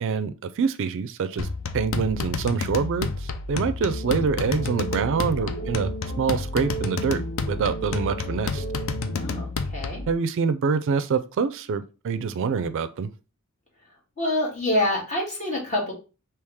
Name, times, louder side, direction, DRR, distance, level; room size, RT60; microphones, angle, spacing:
voice 1, 0.0-1.5 1.7-5.9 6.2-7.2 7.5-8.6 10.1-13.1, right 5 dB, 60° right, 0.4 m, -25 dB
sound 1, 1.4-10.1, left 4 dB, 65° left, 0.5 m, -30 dB
sound 2, 3.9-9.4, right 3 dB, 90° left, 1.7 m, -36 dB
voice 2, 9.1-10.1 14.2-15.9, left 1 dB, 35° left, 1.7 m, -26 dB
3.5 x 2.9 x 4.6 m
head